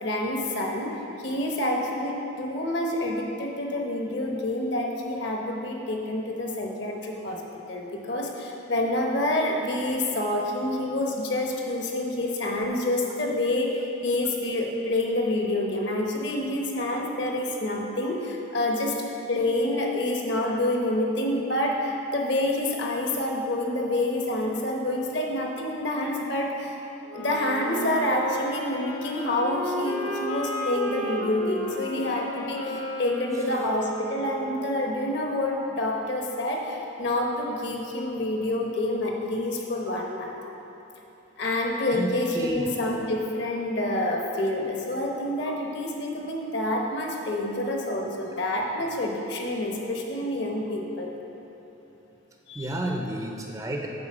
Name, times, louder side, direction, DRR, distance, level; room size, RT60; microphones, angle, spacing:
voice 1, 0.0-1.0 1.2-7.4 7.7-19.0 19.3-26.8 27.1-40.4 41.4-51.1 52.5-52.7, left 1 dB, 55° left, 0 dB, 0.9 m, -27 dB
sound 1, 27.0-34.9, equal, 75° left, 1.2 m, -33 dB
voice 2, 52.6-53.9, right 1 dB, 15° right, 1 dB, 0.4 m, -31 dB
8.7 x 4.1 x 6.1 m, 3.0 s
head